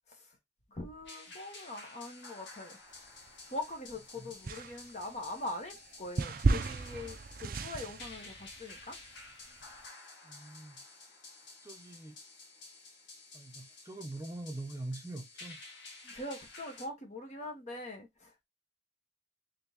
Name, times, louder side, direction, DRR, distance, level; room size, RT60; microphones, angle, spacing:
voice 1, 0.7-2.8 3.5-8.9 16.0-18.3, left 2 dB, 40° left, 1.2 m, -42 dB
sound 1, 1.0-16.9, left 3 dB, 85° left, 1.7 m, -52 dB
sound 2, 3.1-3.9 4.4-9.8, right 3 dB, 50° right, 0.5 m, -34 dB
voice 2, 10.2-10.8 11.6-12.2 13.3-15.6, right 2 dB, 15° right, 0.7 m, -43 dB
3.7 x 3.6 x 2.9 m
head